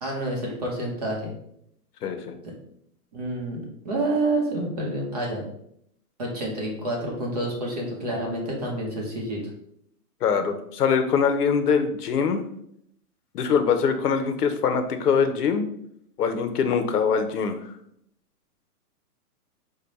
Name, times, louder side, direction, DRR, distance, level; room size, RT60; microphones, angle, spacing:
voice 1, 0.0-1.3 3.1-5.4 6.2-9.4, right 1 dB, 25° right, -2 dB, 0.7 m, -28 dB
voice 2, 2.0-2.4 10.2-12.4 13.3-15.6 16.2-17.6, left 6 dB, 75° left, 7 dB, 0.8 m, -23 dB
5.0 x 2.2 x 4.0 m, 0.72 s
hypercardioid pair, 170°, 47 cm